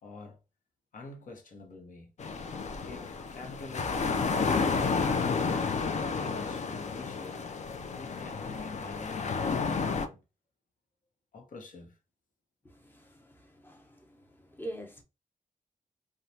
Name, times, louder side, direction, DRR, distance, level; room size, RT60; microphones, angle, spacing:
voice 1, 0.0-0.4 0.9-2.1 2.8-5.6 6.1-7.4 8.0-10.2 11.3-12.0, left 3 dB, 75° left, 0.9 m, -46 dB
sound 1, 2.2-10.1, left 5 dB, 55° left, 0.4 m, -31 dB
voice 2, 12.6-13.3 13.6-13.8 14.6-15.0, right 1 dB, 15° left, 0.8 m, -43 dB
3.1 x 2.3 x 2.7 m
wide cardioid pair, 105°, 14 cm